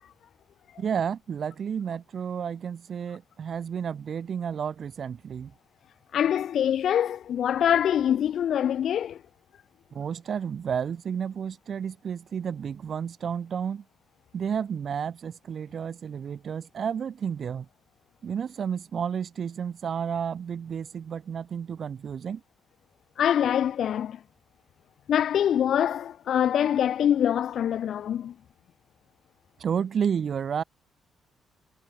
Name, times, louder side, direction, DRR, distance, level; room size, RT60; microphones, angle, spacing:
voice 1, 0.8-5.5 9.9-13.8 14.3-17.7 18.2-22.4 29.6-30.6, right 7 dB, 55° right, 7.4 m, -31 dB
voice 2, 6.1-9.2 23.2-24.2 25.1-28.3, left 9 dB, 65° left, 4.6 m, -24 dB
cardioid pair, 90°, 0 cm